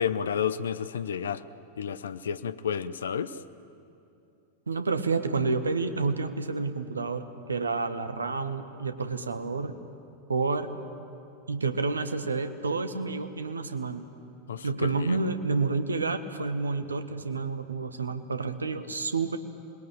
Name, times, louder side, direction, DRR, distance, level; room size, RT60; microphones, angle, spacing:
voice 1, 0.0-1.4 1.8-3.4 14.5-15.2, left 7 dB, 65° left, 15 dB, 0.8 m, -31 dB
voice 2, 4.7-9.7 10.3-10.7 11.5-14.0 14.6-19.4, right 4 dB, 75° right, 9 dB, 1.5 m, -29 dB
28.0 x 21.0 x 8.9 m, 2.7 s
figure-of-eight pair, 90°, 0 cm